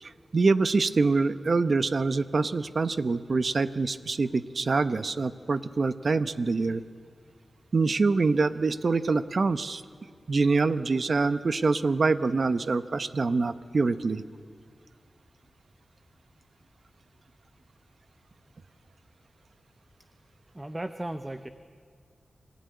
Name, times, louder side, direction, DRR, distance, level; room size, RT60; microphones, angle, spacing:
voice 1, 0.0-6.8 7.7-9.8 10.3-14.2, right 3 dB, 50° right, 12 dB, 0.8 m, -25 dB
voice 2, 20.5-21.5, right 1 dB, 15° right, 9 dB, 0.8 m, -35 dB
26.5 x 17.0 x 9.5 m, 2.1 s
wide cardioid pair, 85°, 0 cm